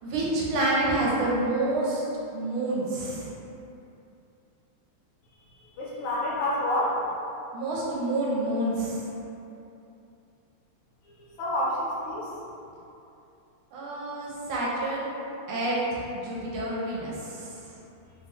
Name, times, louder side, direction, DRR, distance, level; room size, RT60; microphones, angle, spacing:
voice 1, 0.0-2.0 2.3-3.3 7.5-9.1 13.7-15.1 15.5-17.6, right 2 dB, 80° right, -6 dB, 1.4 m, -28 dB
voice 2, 5.5-7.0 11.0-12.3, left 1 dB, 75° left, -6 dB, 1.3 m, -29 dB
3.4 x 2.2 x 2.8 m, 2.8 s
omnidirectional pair, 2.4 m